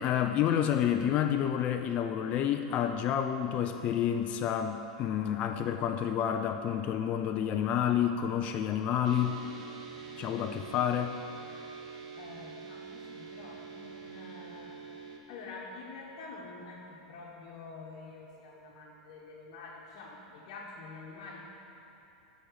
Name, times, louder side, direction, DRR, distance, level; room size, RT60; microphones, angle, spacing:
voice 1, 0.0-9.4 10.2-11.2, left 9 dB, 40° left, 6 dB, 0.4 m, -29 dB
sound 1, 9.0-15.2, right 6 dB, 75° right, 0.9 m, -45 dB
voice 2, 12.2-14.7 15.3-21.4, left 3 dB, 60° left, -4 dB, 1.1 m, -47 dB
7.7 x 5.1 x 6.6 m, 2.9 s
hypercardioid pair, 115°, 4 cm